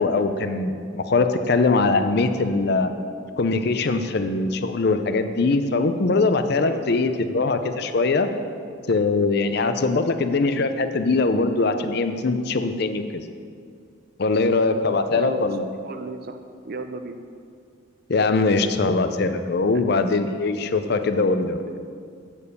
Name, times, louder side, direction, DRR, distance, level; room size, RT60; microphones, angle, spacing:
voice 1, 0.0-2.9 3.4-8.3 8.9-13.0 14.2-15.7 18.1-21.6, left 3 dB, 55° left, 9 dB, 0.5 m, -22 dB
voice 2, 15.1-15.5 15.8-17.2 19.7-19.8, right 3 dB, 50° right, 8 dB, 0.5 m, -34 dB
7.1 x 6.7 x 6.8 m, 2.2 s
head